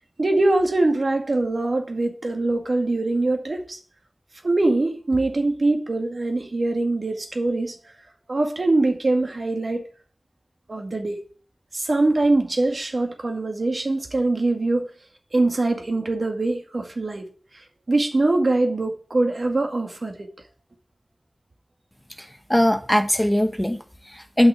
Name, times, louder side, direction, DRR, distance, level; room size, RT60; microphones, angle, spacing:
voice 1, 0.2-3.8 4.4-7.8 8.3-9.8 10.7-11.2 11.7-14.9 15.3-17.2 17.5-20.3, right 2 dB, 65° right, 2.1 m, -23 dB
voice 2, 22.2-24.5, left 1 dB, 10° left, 1.1 m, -21 dB
9.1 x 5.8 x 8.3 m
wide cardioid pair, 65°, 0 cm